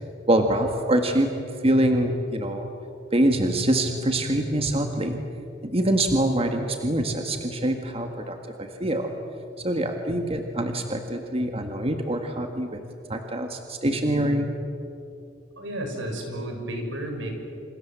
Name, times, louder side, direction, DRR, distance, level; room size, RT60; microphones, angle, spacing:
voice 1, 0.3-1.3 1.6-2.7 3.1-5.2 5.6-9.1 9.6-12.7 13.1-14.5, right 1 dB, 30° right, 5 dB, 1.8 m, -24 dB
voice 2, 15.6-17.3, right 1 dB, 85° right, 3 dB, 6.2 m, -32 dB
28.0 x 28.0 x 7.6 m, 2.7 s
head